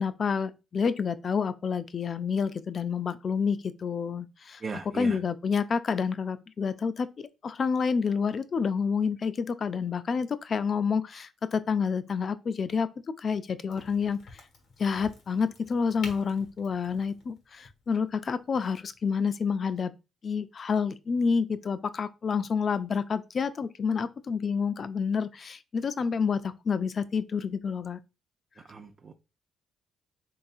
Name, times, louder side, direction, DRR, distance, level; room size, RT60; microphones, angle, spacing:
voice 1, 0.0-4.6 4.9-12.9 13.2-14.4 14.8-19.9 20.2-28.0, left 5 dB, 45° left, 0.4 m, -29 dB
voice 2, 4.6-5.2 28.7-29.1, right 4 dB, 40° right, 0.4 m, -37 dB
Crack, 13.7-19.1, left 3 dB, 80° left, 1.3 m, -49 dB
3.9 x 3.4 x 2.4 m
cardioid pair, 90°, 0 cm